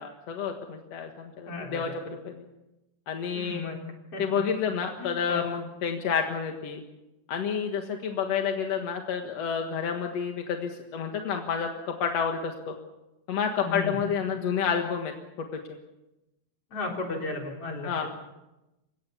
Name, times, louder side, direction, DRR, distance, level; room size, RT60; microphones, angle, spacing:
voice 1, 0.0-2.4 3.1-3.6 4.2-6.8 7.3-12.7 13.3-15.1 15.4-15.5 17.8-18.1, left 7 dB, 55° left, 3 dB, 2.1 m, -29 dB
voice 2, 1.5-1.9 3.3-3.8 4.1-4.4 5.0-5.4 13.6-14.0 16.7-17.9, left 3 dB, 35° left, 1 dB, 4.7 m, -34 dB
29.0 x 17.0 x 7.1 m, 0.97 s
omnidirectional pair, 4.7 m